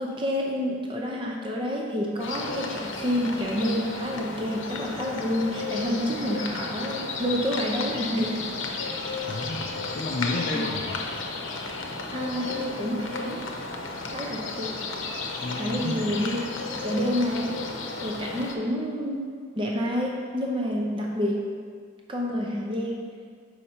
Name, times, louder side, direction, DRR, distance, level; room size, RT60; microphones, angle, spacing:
voice 1, 0.0-8.4 10.5-10.7 12.1-13.5 14.0-14.8 15.6-16.4 16.8-17.6 18.0-21.5 22.1-23.0, equal, 25° right, -1 dB, 0.6 m, -28 dB
sound 1, 2.2-18.6, left 3 dB, 80° left, 0.7 m, -33 dB
voice 2, 9.2-11.0 15.4-16.2, left 2 dB, 45° left, -2 dB, 0.4 m, -31 dB
6.7 x 4.8 x 4.3 m, 2.1 s
head